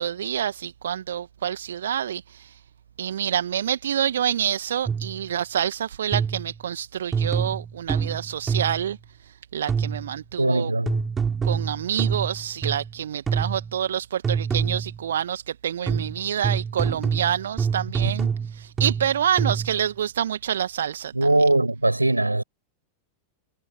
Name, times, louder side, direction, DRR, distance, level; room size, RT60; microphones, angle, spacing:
voice 1, 0.0-2.6 3.0-9.0 9.5-10.7 11.4-21.3, right 9 dB, 65° right, 1.7 m, -27 dB
sound 1, 4.9-5.2 6.1-6.6 7.1-8.9 9.7-10.2 10.9-12.9 13.3-13.8 14.2-15.0 15.9-19.8, right 6 dB, 20° right, 7.0 m, -26 dB
voice 2, 10.4-11.0 18.0-18.1 21.1-22.4, right 2 dB, 85° right, 6.1 m, -21 dB
figure-of-eight pair, 90°, 0 cm